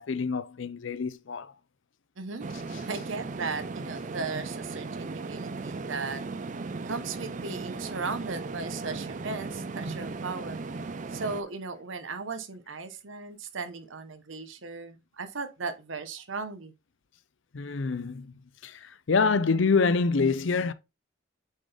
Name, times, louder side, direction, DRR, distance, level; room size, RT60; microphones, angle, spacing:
voice 1, 0.0-1.5 2.7-2.8 17.5-18.3 18.6-20.7, left 4 dB, 70° left, 0.5 m, -26 dB
voice 2, 2.2-2.5 2.8-6.2 6.9-10.6 11.1-16.7, right 4 dB, 75° right, 1.0 m, -36 dB
sound 1, 2.4-11.4, right 3 dB, 40° right, 0.4 m, -37 dB
8.4 x 3.9 x 3.4 m
head